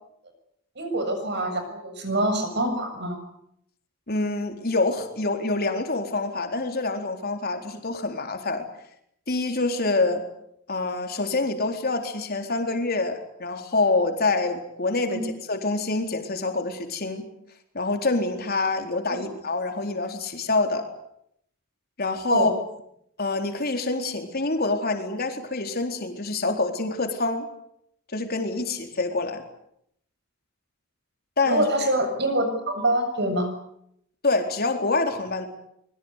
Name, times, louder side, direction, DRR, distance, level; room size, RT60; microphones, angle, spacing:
voice 1, 0.8-3.2 15.1-15.2 19.1-19.3 22.3-22.5 31.5-33.5, right 1 dB, 60° right, 7 dB, 7.1 m, -25 dB
voice 2, 4.1-8.7 9.3-10.2 10.7-17.3 17.7-20.9 22.0-22.5 23.2-27.5 28.1-29.4 31.4-31.7 34.2-35.5, left 3 dB, 50° left, 4 dB, 4.0 m, -26 dB
25.0 x 23.0 x 8.3 m, 0.74 s
head